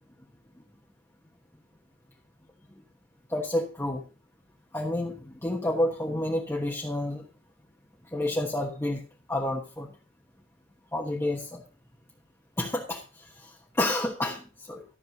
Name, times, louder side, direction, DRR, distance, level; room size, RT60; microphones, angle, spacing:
voice 1, 3.3-4.0 4.7-7.2 8.1-9.0 9.3-9.9 10.9-11.6 12.6-14.8, left 1 dB, 10° left, -1 dB, 1.3 m, -30 dB
13.5 x 6.6 x 5.1 m, 0.35 s
head